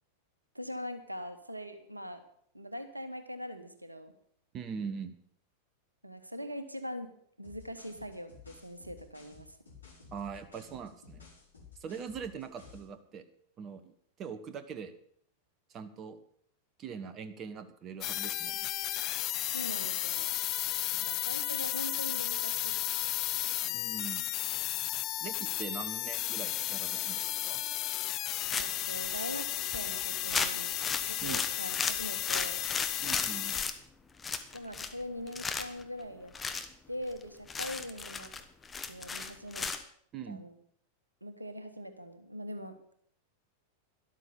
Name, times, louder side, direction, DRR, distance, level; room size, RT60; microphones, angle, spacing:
voice 1, 0.5-2.2 2.5-4.1 6.0-7.1 7.4-9.6 19.5-20.3 21.0-22.8 23.6-23.9 28.5-30.8 31.0-32.6 34.5-36.3 36.9-38.3 38.9-39.7 40.3-40.6 41.2-42.7, equal, 85° right, 9 dB, 1.3 m, -42 dB
voice 2, 4.5-5.1 10.1-11.3 11.8-13.2 13.6-13.9 14.2-14.9 15.7-16.2 16.8-18.7 23.7-24.3 25.2-27.6 31.2-31.4 33.0-33.6 40.1-40.4, right 6 dB, 30° right, 11 dB, 1.2 m, -42 dB
sound 1, 7.4-12.9, left 6 dB, 75° left, 4.9 m, -54 dB
sound 2, 18.0-33.7, left 15 dB, 35° left, 0.5 m, -34 dB
sound 3, 28.5-28.9 29.4-29.5 29.7-29.9 30.3-33.7 34.2-35.0 35.3-35.8 36.3-36.7 37.1-37.2 37.5-39.8, left 4 dB, 15° left, 1.2 m, -34 dB
13.0 x 12.0 x 5.4 m, 0.63 s
figure-of-eight pair, 90°, 0 cm